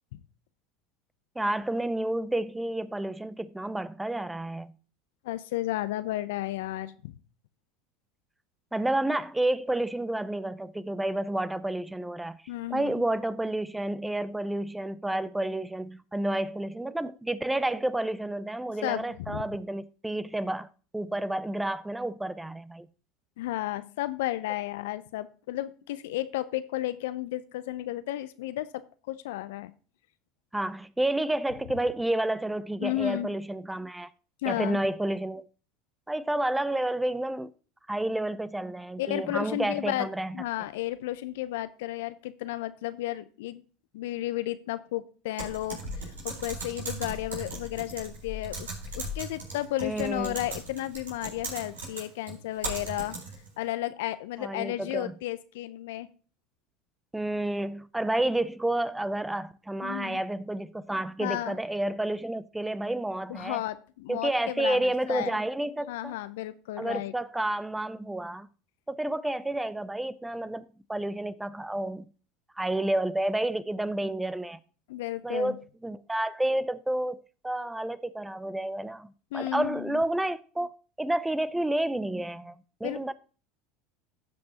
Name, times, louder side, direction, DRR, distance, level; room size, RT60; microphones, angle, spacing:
voice 1, 1.4-4.8 8.7-12.4 12.7-20.7 20.9-22.9 30.5-34.1 34.5-35.5 36.1-37.5 37.9-40.4 49.8-50.4 54.4-55.1 57.1-63.6 64.1-66.1 66.8-68.5 68.9-72.1 72.6-74.6 75.2-75.6 75.8-80.7 81.0-83.1, right 1 dB, 10° right, 0.5 m, -30 dB
voice 2, 5.2-7.2 12.5-13.0 18.8-19.4 23.4-28.8 29.1-29.7 32.8-33.3 34.4-34.8 39.0-40.1 40.3-43.6 43.9-48.7 49.0-53.2 53.6-56.1 59.8-60.2 61.2-61.6 63.3-65.4 65.9-67.1 74.9-75.6 79.3-80.0 82.8-83.1, left 15 dB, 70° left, 0.6 m, -33 dB
Typing, 45.4-53.5, right 1 dB, 85° right, 4.3 m, -38 dB
15.5 x 5.3 x 2.9 m
hypercardioid pair, 80°, 0 cm